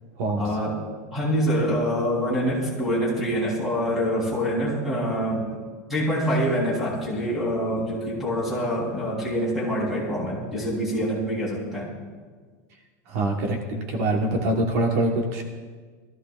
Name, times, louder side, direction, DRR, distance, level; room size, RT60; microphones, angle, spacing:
voice 1, 0.4-0.8 1.1-5.5 5.9-11.9, equal, ahead, -6 dB, 3.6 m, -25 dB
voice 2, 13.1-15.4, right 1 dB, 60° right, 2 dB, 1.4 m, -24 dB
21.0 x 14.5 x 2.5 m, 1.5 s
supercardioid pair, 175°, 9 cm